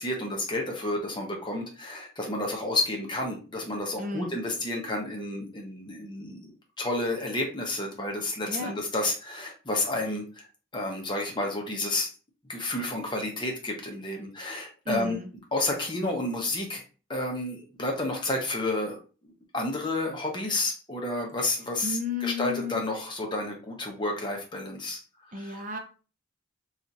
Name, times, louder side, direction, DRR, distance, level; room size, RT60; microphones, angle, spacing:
voice 1, 0.0-6.5 6.8-10.5 10.7-12.1 12.5-15.2 15.5-16.8 17.1-19.0 19.2-25.0 25.3-25.6, left 2 dB, 20° left, 1 dB, 0.8 m, -31 dB
voice 2, 4.0-4.3 8.5-8.7 14.9-15.3 21.8-22.8 25.3-25.8, left 3 dB, 40° right, 4 dB, 0.7 m, -33 dB
2.8 x 2.4 x 4.0 m, 0.36 s
head